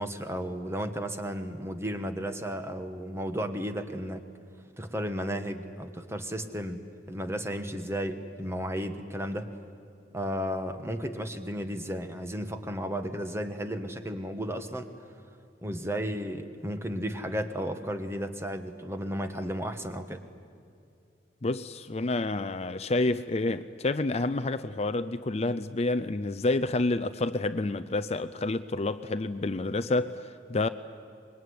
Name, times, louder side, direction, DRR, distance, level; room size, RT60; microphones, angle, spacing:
voice 1, 0.0-4.2 4.8-6.8 7.1-9.6 10.1-14.9 15.6-20.2, equal, 15° right, 1.4 m, -33 dB
voice 2, 21.4-30.7, left 2 dB, 35° left, 0.5 m, -29 dB
25.5 x 22.0 x 9.5 m
head